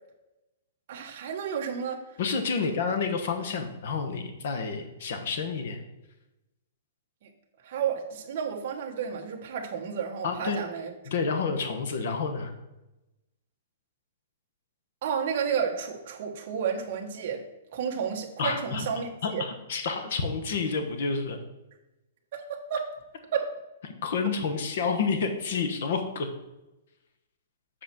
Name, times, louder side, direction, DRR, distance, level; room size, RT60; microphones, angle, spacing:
voice 1, 0.9-2.0 7.2-7.3 7.6-10.9 11.3-11.4 15.0-17.4 17.7-19.4 22.3-22.9 23.3-23.5, right 7 dB, 35° right, 1 dB, 1.2 m, -31 dB
voice 2, 2.2-5.8 10.2-10.6 11.1-12.5 18.4-18.9 19.2-21.4 24.0-26.3, left 5 dB, 50° left, 6 dB, 1.1 m, -29 dB
7.7 x 4.3 x 5.9 m, 0.98 s
hypercardioid pair, 175°, 0 cm